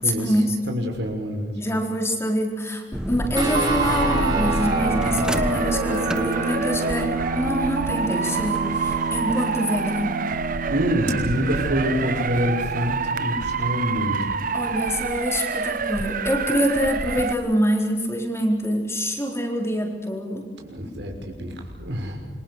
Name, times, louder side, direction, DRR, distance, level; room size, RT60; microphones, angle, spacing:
voice 1, 0.0-1.6 10.7-14.3 20.6-22.3, equal, 80° right, 3 dB, 6.0 m, -26 dB
voice 2, 1.6-10.1 14.5-20.5, equal, 15° left, 1 dB, 4.4 m, -25 dB
sound 1, 2.9-9.6, equal, 5° right, 1.2 m, -30 dB
sound 2, 3.3-15.1, right 3 dB, 25° right, 4.9 m, -30 dB
Motor vehicle (road) / Siren, 3.5-17.3, right 5 dB, 50° right, 1.2 m, -27 dB
27.5 x 24.5 x 6.6 m, 1.4 s
head